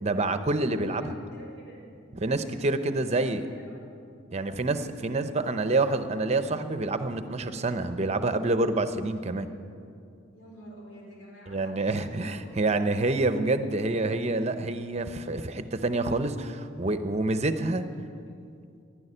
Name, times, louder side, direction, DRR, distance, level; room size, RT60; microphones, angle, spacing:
voice 1, 0.0-1.1 2.1-3.4 4.3-9.5 11.5-17.8, right 2 dB, 35° right, 10 dB, 0.7 m, -27 dB
voice 2, 0.9-1.9 2.2-3.8 10.3-12.9, right 1 dB, 75° left, -2 dB, 4.8 m, -48 dB
11.0 x 11.0 x 10.0 m, 2.4 s
head